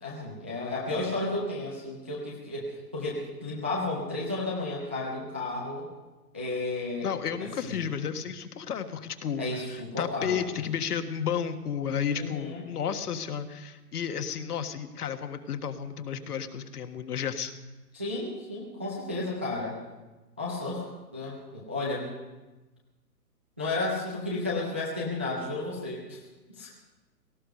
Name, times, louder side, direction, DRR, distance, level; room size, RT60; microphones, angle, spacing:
voice 1, 0.0-5.9 6.3-7.1 7.6-7.8 9.4-10.5 12.1-12.6 17.9-19.8 20.4-22.1 23.6-26.2 26.6-26.7, left 2 dB, 10° right, -5 dB, 0.4 m, -33 dB
voice 2, 7.0-17.5, left 7 dB, 65° left, 7 dB, 1.5 m, -32 dB
18.0 x 14.0 x 5.3 m, 1.1 s
hypercardioid pair, 155°, 48 cm